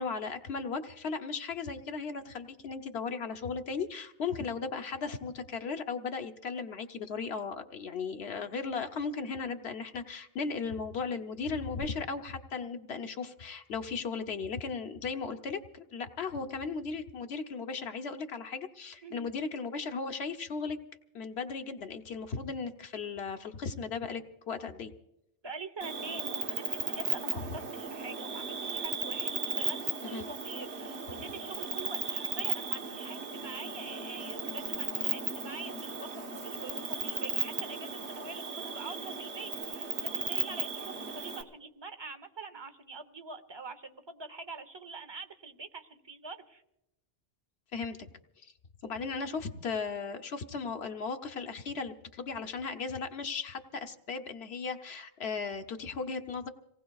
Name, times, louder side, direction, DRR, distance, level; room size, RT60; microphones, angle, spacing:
voice 1, 0.0-20.8 21.1-24.9 27.3-27.4 30.0-30.3 47.7-48.0 48.4-48.5 48.8-56.5, left 5 dB, 70° left, 7 dB, 1.1 m, -36 dB
voice 2, 25.4-46.6, right 3 dB, 25° right, 10 dB, 0.8 m, -45 dB
Cricket, 25.8-41.4, right 4 dB, 85° right, 1.5 m, -36 dB
27.5 x 18.0 x 2.3 m, 0.86 s
omnidirectional pair, 1.1 m